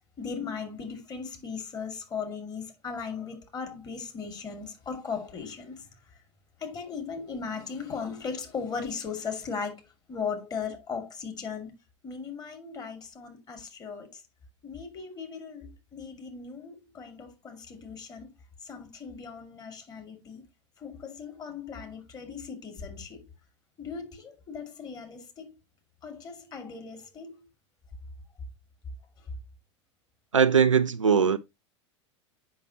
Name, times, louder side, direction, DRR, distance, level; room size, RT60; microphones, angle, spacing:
voice 1, 0.2-6.2 6.6-11.7 12.0-14.2 14.6-18.3 18.6-20.4 20.8-23.3 23.8-25.5 26.0-27.5 29.2-29.3, left 5 dB, 25° left, 2.5 m, -38 dB
voice 2, 30.3-31.4, right 6 dB, 80° right, 0.5 m, -20 dB
8.5 x 5.8 x 2.9 m
figure-of-eight pair, 85°, 16 cm